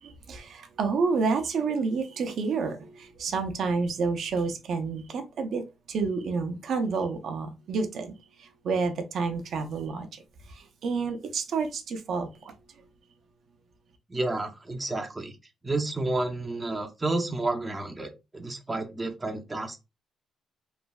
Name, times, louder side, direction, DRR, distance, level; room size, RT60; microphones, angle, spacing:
voice 1, 0.0-8.1 8.4-10.2 10.5-12.5, right 4 dB, 65° right, 0.5 m, -29 dB
voice 2, 14.1-15.4 15.6-19.8, right 2 dB, 20° right, 0.6 m, -30 dB
3.1 x 2.5 x 2.3 m
cardioid pair, 90°, 0 cm